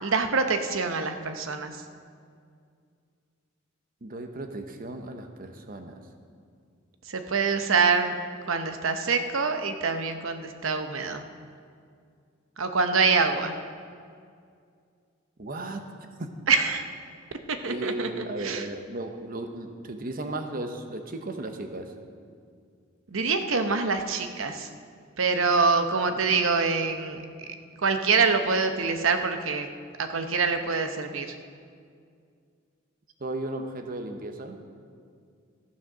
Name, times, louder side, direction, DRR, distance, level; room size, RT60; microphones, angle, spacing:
voice 1, 0.0-1.8 7.1-8.2 8.5-11.2 12.6-13.6 16.5-16.9 17.5-18.6 23.1-24.7 25.2-27.2 27.8-29.7 30.0-31.4, right 4 dB, 85° right, 7 dB, 0.9 m, -25 dB
voice 2, 4.0-6.0 15.4-15.9 16.2-16.3 17.6-21.9 26.1-26.2 33.2-34.6, right 2 dB, 45° right, 6 dB, 0.9 m, -35 dB
14.0 x 7.3 x 6.1 m, 2.3 s
head